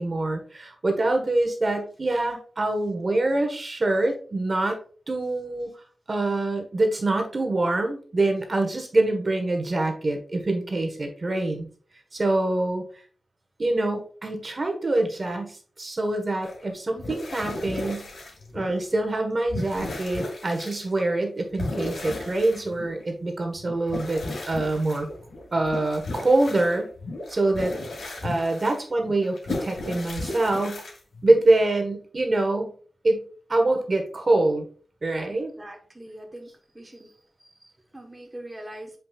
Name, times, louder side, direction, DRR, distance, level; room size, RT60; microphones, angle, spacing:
voice 1, 0.0-4.8 5.1-5.7 6.1-11.7 12.1-12.8 13.6-18.0 18.5-25.1 25.5-26.9 27.3-30.8 31.2-32.7 33.0-33.2 33.5-34.6 35.0-35.5, right 2 dB, 35° right, 4 dB, 1.4 m, -25 dB
sound 1, 16.4-16.6 17.0-19.0 19.2-20.8 21.6-23.1 23.5-31.4, left 2 dB, 90° left, 2.6 m, -35 dB
voice 2, 35.3-36.5 36.7-39.0, right 1 dB, 15° right, 0 dB, 1.2 m, -43 dB
8.7 x 5.3 x 2.4 m, 0.41 s
wide cardioid pair, 150°, 0 cm